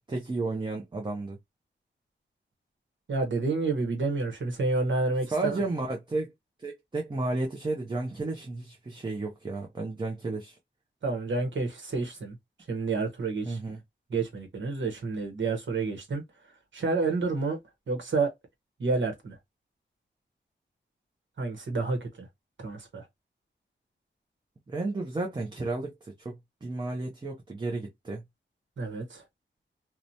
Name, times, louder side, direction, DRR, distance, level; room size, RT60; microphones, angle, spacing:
voice 1, 0.1-1.4 5.3-6.3 6.6-10.6 13.5-13.8 24.7-28.2, right 2 dB, 25° right, 0.5 m, -32 dB
voice 2, 3.1-5.6 11.0-12.4 12.7-13.6 14.1-16.2 16.7-17.6 17.9-18.3 18.8-19.4 21.4-22.3 22.6-23.0 28.8-29.2, right 3 dB, 75° right, 1.0 m, -29 dB
2.8 x 2.1 x 2.6 m
wide cardioid pair, 105°, 20 cm